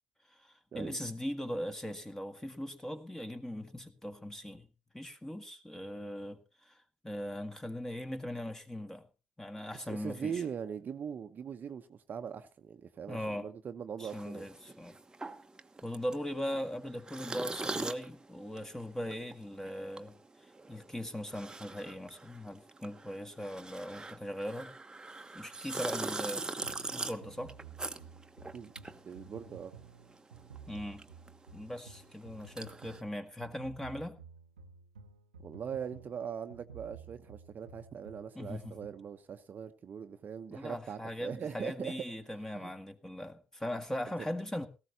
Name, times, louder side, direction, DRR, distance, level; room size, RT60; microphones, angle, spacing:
voice 1, 0.3-9.1 9.4-10.4 13.1-13.5 14.0-15.0 15.8-24.7 25.3-26.4 26.9-27.5 30.7-31.1 31.5-34.2 38.3-38.8 40.5-44.7, equal, 10° left, 1.8 m, -40 dB
voice 2, 9.7-14.5 28.5-28.7 29.1-29.7 35.4-41.9 42.5-42.7, right 7 dB, 45° right, 0.9 m, -41 dB
sound 1, 14.0-29.8 30.1-33.0, right 3 dB, 15° right, 1.1 m, -42 dB
sound 2, 26.6-39.1, right 6 dB, 90° right, 0.8 m, -53 dB
18.0 x 15.0 x 2.8 m
hypercardioid pair, 55°, 4 cm